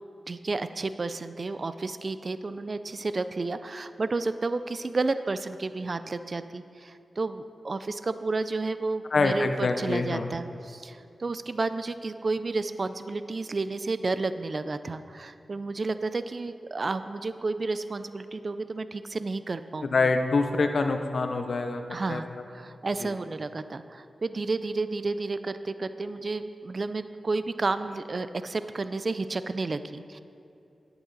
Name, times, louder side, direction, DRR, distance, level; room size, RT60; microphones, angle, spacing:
voice 1, 0.3-20.1 21.9-30.2, right 3 dB, 50° right, 12 dB, 0.5 m, -31 dB
voice 2, 9.1-10.2 19.9-21.8 22.1-22.2 23.0-23.1, left 3 dB, 65° left, 6 dB, 0.7 m, -25 dB
11.0 x 9.1 x 4.0 m, 2.7 s
cardioid pair, 40°, 0 cm